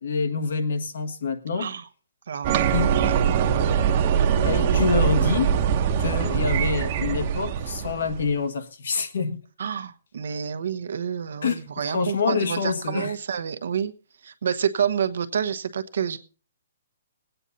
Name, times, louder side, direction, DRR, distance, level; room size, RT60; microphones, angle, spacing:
voice 1, 0.0-1.7 2.7-2.9 4.4-5.6 6.0-9.4 11.4-13.1, left 5 dB, 70° left, 8 dB, 1.6 m, -26 dB
voice 2, 1.6-1.9 2.3-3.1 9.6-13.9 14.2-16.2, right 7 dB, 70° right, 10 dB, 1.0 m, -28 dB
sound 1, 2.4-8.3, right 8 dB, 35° right, 1.0 m, -22 dB
19.5 x 9.0 x 4.1 m, 0.37 s
hypercardioid pair, 165°, 0 cm